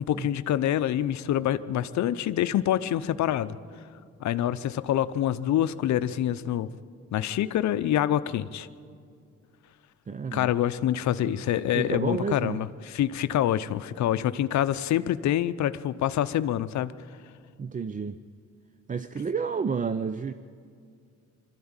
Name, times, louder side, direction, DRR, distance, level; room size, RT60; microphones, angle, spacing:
voice 1, 0.0-3.6 4.2-6.7 7.1-8.7 10.3-16.9, left 11 dB, 65° left, 13 dB, 0.7 m, -26 dB
voice 2, 10.1-10.5 11.2-11.3 11.7-12.7 17.6-18.2 18.9-20.3, right 5 dB, 25° right, 12 dB, 0.5 m, -30 dB
21.5 x 13.5 x 8.9 m, 2.3 s
cardioid pair, 90°, 30 cm